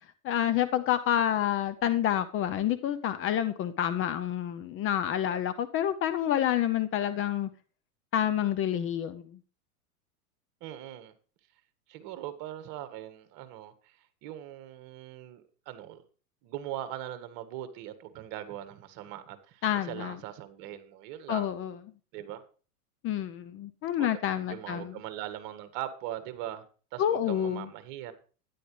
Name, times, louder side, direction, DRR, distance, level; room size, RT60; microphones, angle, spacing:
voice 1, 0.2-7.5 8.1-9.4 19.6-20.2 21.3-21.8 23.0-25.0 27.0-27.7, left 10 dB, 25° left, 0.7 m, -28 dB
voice 2, 10.6-11.1 11.9-16.0 16.4-21.5 22.1-22.4 24.0-24.1 24.5-26.7 26.9-28.1, right 12 dB, 45° right, 1.9 m, -40 dB
13.0 x 10.5 x 3.3 m
hypercardioid pair, 120°, 46 cm